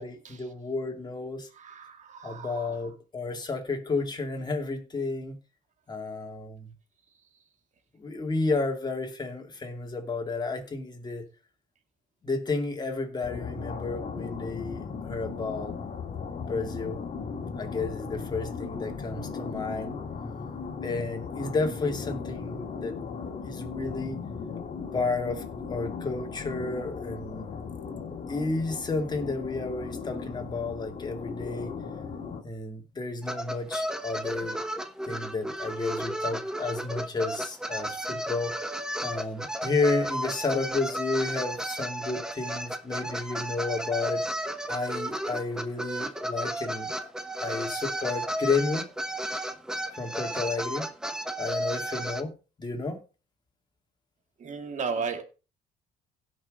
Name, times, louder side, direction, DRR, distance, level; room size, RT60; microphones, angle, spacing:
voice 1, 0.0-1.5 2.2-5.4 5.9-6.7 8.0-11.3 12.2-15.8 16.5-17.0 17.6-19.9 20.8-23.0 23.5-24.2 24.9-25.4 25.7-27.5 28.3-31.7 32.4-34.6 35.0-38.6 39.0-44.2 44.7-47.1 47.4-48.8 49.9-50.9 51.4-53.0, left 3 dB, 25° left, 2.7 m, -31 dB
voice 2, 1.6-2.5 54.4-55.2, right 5 dB, 45° right, 2.2 m, -34 dB
sound 1, 13.2-32.4, left 5 dB, 45° left, 2.2 m, -37 dB
sound 2, 33.2-52.2, right 1 dB, 5° right, 1.0 m, -33 dB
17.0 x 6.1 x 3.9 m
cardioid pair, 110°, 17 cm